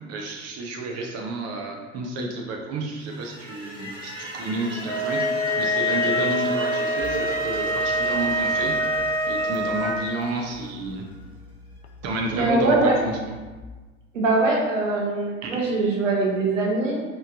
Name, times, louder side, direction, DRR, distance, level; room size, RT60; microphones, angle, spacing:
voice 1, 0.1-5.2 5.6-8.7 9.3-11.0 12.0-13.2 15.4-15.5, right 2 dB, 40° right, 1 dB, 0.8 m, -30 dB
sound 1, 3.0-11.1, right 1 dB, 15° right, 1.2 m, -36 dB
sound 2, 4.9-10.0, equal, 5° left, 0.9 m, -25 dB
sound 3, 7.0-13.6, left 3 dB, 60° left, 0.5 m, -46 dB
voice 2, 12.3-13.0 14.1-17.0, right 2 dB, 80° right, -2 dB, 1.0 m, -22 dB
4.4 x 3.2 x 3.5 m, 1.3 s
figure-of-eight pair, 70°, 37 cm